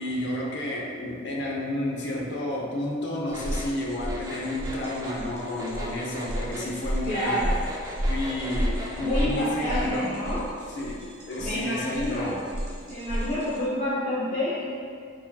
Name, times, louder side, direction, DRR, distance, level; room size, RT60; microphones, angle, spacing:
voice 1, 0.0-7.5 8.0-10.2 10.7-12.4, left 1 dB, 65° left, -2 dB, 0.7 m, -31 dB
sound 1, 3.3-9.3, equal, 20° right, 0.4 m, -39 dB
sound 2, 3.3-13.6, equal, 55° right, 1.0 m, -33 dB
voice 2, 7.1-7.5 9.0-10.4 11.4-12.4 12.9-14.6, left 1 dB, 40° left, -12 dB, 1.0 m, -28 dB
4.6 x 4.2 x 2.3 m, 2.2 s
head